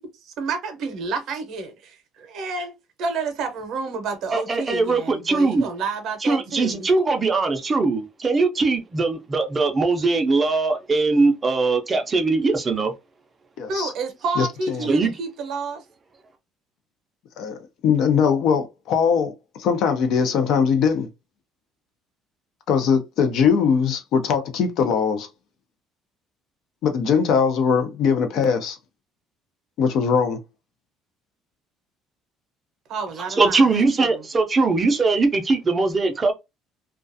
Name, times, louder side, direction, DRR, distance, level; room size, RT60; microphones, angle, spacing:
voice 1, 0.2-2.7 3.0-6.9 13.7-15.8 32.9-34.3, right 4 dB, 55° right, 0.7 m, -30 dB
voice 2, 4.3-5.7 6.2-12.9 14.9-15.1 33.4-36.3, right 3 dB, 20° right, 0.5 m, -21 dB
voice 3, 13.6-13.9 14.4-14.9 17.4-19.3 19.6-21.1 22.7-25.3 26.8-28.8 29.8-30.4, left 6 dB, 55° left, 0.5 m, -21 dB
2.3 x 2.2 x 2.6 m
cardioid pair, 155°, 0 cm